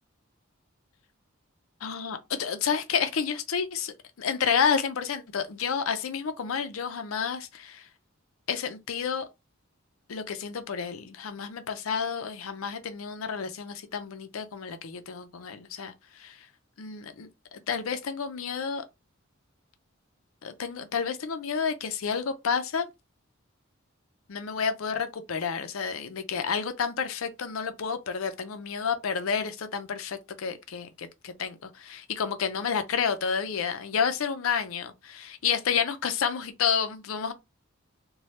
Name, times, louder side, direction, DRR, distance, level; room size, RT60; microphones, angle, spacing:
voice 1, 1.8-7.8 8.5-9.3 10.1-16.4 16.8-18.8 20.4-22.9 24.3-37.3, left 6 dB, 85° left, 0.5 m, -30 dB
3.1 x 2.2 x 2.8 m
head